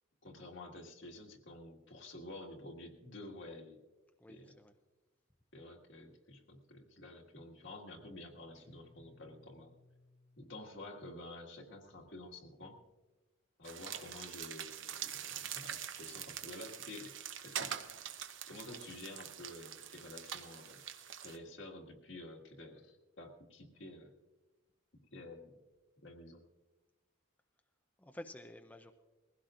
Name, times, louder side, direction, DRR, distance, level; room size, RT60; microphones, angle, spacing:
voice 1, 0.2-3.8 4.3-4.6 5.5-9.7 10.4-12.8 13.6-17.1 17.4-17.7 18.5-20.8 21.2-24.1 25.1-25.5 26.0-26.4, left 2 dB, 65° left, 2 dB, 1.8 m, -50 dB
voice 2, 4.2-4.7 28.0-28.9, left 1 dB, 10° left, 5 dB, 0.5 m, -50 dB
Guitar, 8.5-11.1, left 3 dB, 40° right, 1.6 m, -65 dB
sound 1, 13.6-21.4, right 9 dB, 65° right, 0.9 m, -44 dB
21.0 x 16.0 x 2.5 m, 1.2 s
head